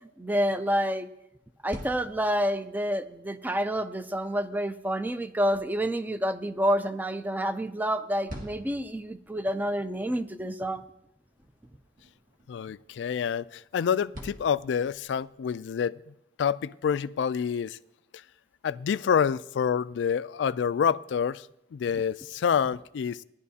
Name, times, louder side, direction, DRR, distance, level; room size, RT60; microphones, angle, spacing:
voice 1, 0.2-1.1 1.6-10.8, equal, 10° right, 0.4 m, -28 dB
sound 1, 1.4-15.4, equal, 45° right, 1.8 m, -50 dB
voice 2, 12.5-16.0 16.4-17.8 18.6-21.5 21.7-23.2, left 7 dB, 80° left, 0.3 m, -27 dB
18.5 x 11.0 x 2.8 m
head